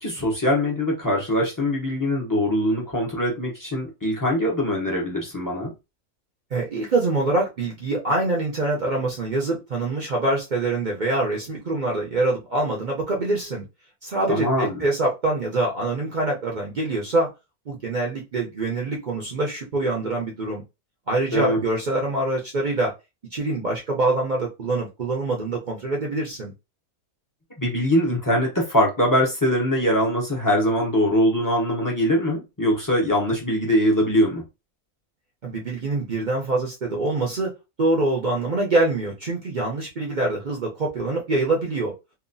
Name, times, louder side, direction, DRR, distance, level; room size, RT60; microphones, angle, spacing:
voice 1, 0.0-5.7 14.3-14.8 21.3-21.6 27.6-34.4, equal, 30° left, 0.3 m, -22 dB
voice 2, 6.5-13.6 14.0-17.3 17.7-20.6 21.1-22.9 23.3-26.5 35.4-37.5 37.8-41.9, right 2 dB, 50° right, 0.5 m, -25 dB
2.9 x 2.2 x 2.6 m
omnidirectional pair, 1.6 m